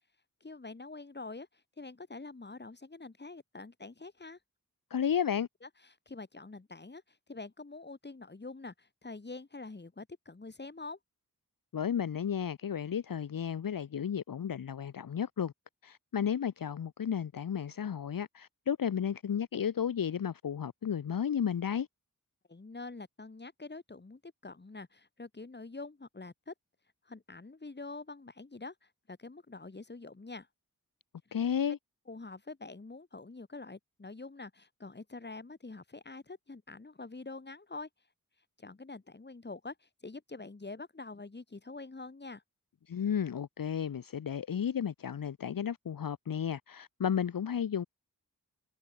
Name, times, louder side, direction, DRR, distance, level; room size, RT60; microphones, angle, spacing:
voice 1, 0.4-4.4 5.6-11.0 22.5-26.5 27.0-30.5 31.3-31.4 32.1-37.9 38.6-42.4, left 3 dB, 30° left, 1.5 m, -46 dB
voice 2, 4.9-5.5 11.7-15.5 15.8-21.9 31.3-31.8 42.9-47.9, left 8 dB, 70° left, 0.7 m, -33 dB
wide cardioid pair, 75°, 35 cm